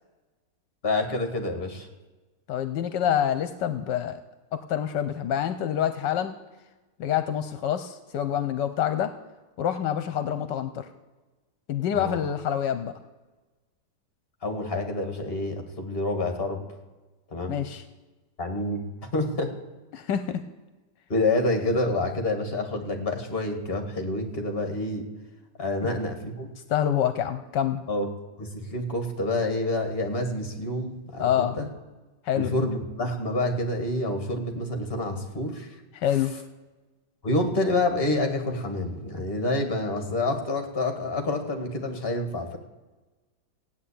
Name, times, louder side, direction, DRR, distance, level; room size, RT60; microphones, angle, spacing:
voice 1, 0.8-1.9 11.9-12.2 14.4-16.6 17.3-17.6 18.4-18.8 19.1-19.5 21.1-25.0 25.6-26.5 27.9-28.1 28.4-31.7 32.3-35.8 37.2-42.6, left 2 dB, 30° left, 5 dB, 2.2 m, -28 dB
voice 2, 2.5-4.2 4.5-6.4 7.0-9.1 9.6-10.9 11.7-12.9 17.5-17.8 19.9-20.4 26.7-27.8 31.2-31.6 32.2-32.5 35.9-36.3, left 10 dB, 80° left, 10 dB, 1.4 m, -26 dB
16.0 x 9.2 x 8.5 m, 1.2 s
omnidirectional pair, 1.9 m